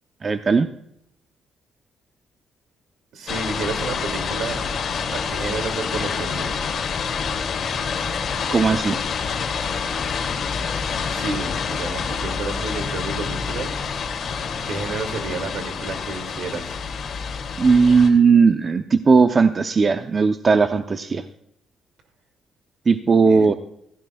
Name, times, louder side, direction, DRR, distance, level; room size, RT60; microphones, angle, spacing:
voice 1, 0.2-0.7 8.5-9.0 17.6-21.2 22.9-23.5, right 5 dB, 35° right, 8 dB, 0.7 m, -17 dB
voice 2, 3.1-4.6 5.1-6.6 11.1-13.8 14.6-16.8 23.2-23.5, right 4 dB, 70° right, 7 dB, 2.3 m, -31 dB
sound 1, 3.3-18.1, left 6 dB, 60° left, 2.6 m, -27 dB
16.0 x 15.5 x 2.3 m, 0.73 s
cardioid pair, 90°, 0 cm